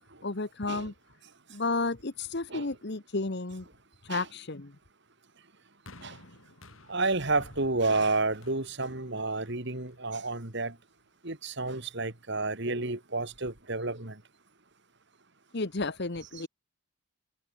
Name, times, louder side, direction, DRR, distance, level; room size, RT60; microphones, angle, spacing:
voice 1, 0.2-0.9 1.5-3.7 4.0-4.7 15.5-16.5, left 3 dB, 50° left, 1.1 m, -32 dB
sound 1, 5.9-10.2 11.0-11.1, left 2 dB, 65° left, 4.4 m, -53 dB
voice 2, 6.9-10.7 11.2-14.1, right 3 dB, 55° right, 2.5 m, -30 dB
head